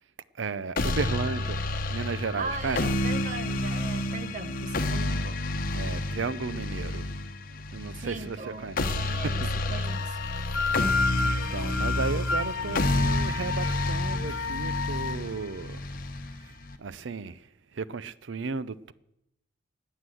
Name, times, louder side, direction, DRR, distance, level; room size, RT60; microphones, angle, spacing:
voice 1, 0.4-1.6 1.9-2.8 5.1-5.2 5.7-7.1 7.5-9.1 9.4-9.5 10.6-15.8 16.8-17.4 17.7-18.9, right 4 dB, 70° right, 0.6 m, -34 dB
sound 1, 0.8-16.8, left 2 dB, 50° left, 1.1 m, -30 dB
voice 2, 2.4-5.5 8.0-9.4 9.7-10.2, right 3 dB, 40° right, 1.1 m, -38 dB
sound 2, 9.9-15.2, left 4 dB, 85° left, 0.9 m, -31 dB
19.5 x 8.0 x 7.8 m
head